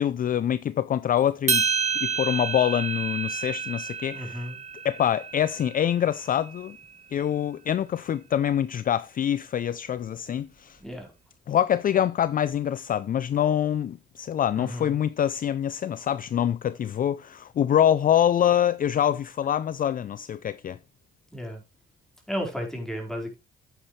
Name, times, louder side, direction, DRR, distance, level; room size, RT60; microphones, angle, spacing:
voice 1, 0.0-1.6 2.0-4.4 4.8-6.8 7.1-10.8 11.5-20.8, left 10 dB, 45° left, 0.4 m, -25 dB
sound 1, 1.5-5.9, right 6 dB, 35° right, 1.7 m, -29 dB
voice 2, 4.1-4.6 10.8-11.1 14.5-15.0 21.3-21.6 22.3-23.3, equal, ahead, 4.6 m, -33 dB
9.4 x 9.0 x 3.2 m
cardioid pair, 90°, 20 cm